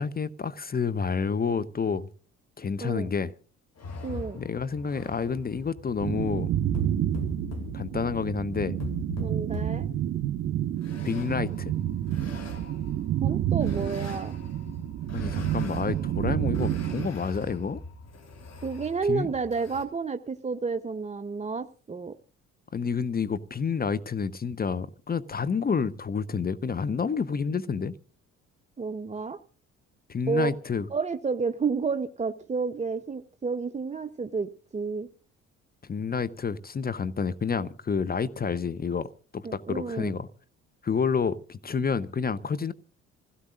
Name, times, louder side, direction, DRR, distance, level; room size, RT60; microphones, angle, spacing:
voice 1, 0.0-2.1 2.6-3.3 4.3-6.5 7.7-8.7 11.0-11.7 15.1-17.8 19.1-19.3 22.7-27.9 30.1-30.9 35.8-39.1 39.3-40.3 40.8-42.7, left 5 dB, 25° left, 0.9 m, -29 dB
sound 1, 3.8-19.8, left 3 dB, 40° left, 3.4 m, -42 dB
voice 2, 4.0-4.4 9.2-9.9 13.2-14.4 18.6-22.2 28.8-29.4 30.3-30.5 30.9-35.1 39.4-40.1, right 5 dB, 20° right, 0.8 m, -30 dB
sound 2, 6.0-17.1, right 12 dB, 50° right, 1.2 m, -29 dB
27.0 x 16.5 x 2.5 m
figure-of-eight pair, 45°, 38 cm